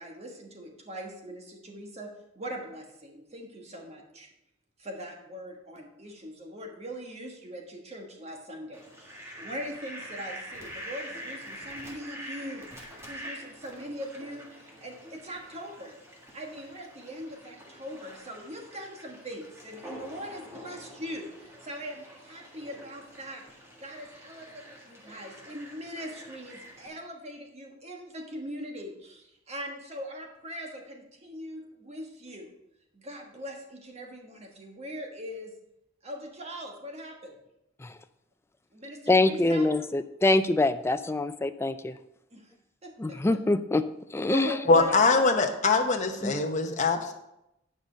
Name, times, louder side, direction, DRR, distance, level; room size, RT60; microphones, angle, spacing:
voice 1, 0.0-4.3 4.8-12.7 13.1-16.0 16.3-23.5 23.8-32.5 32.9-35.5 36.0-37.4 38.7-39.7 42.3-42.5 42.8-43.4 44.2-45.3, equal, 35° right, 1.5 m, -41 dB
Fowl, 8.7-26.9, equal, 15° right, 1.7 m, -46 dB
voice 2, 39.1-42.0 43.0-43.8 44.1-44.6 46.2-46.4, left 2 dB, 15° left, 0.3 m, -25 dB
voice 3, 44.7-47.1, left 3 dB, 40° left, 0.9 m, -23 dB
9.4 x 5.4 x 5.1 m
head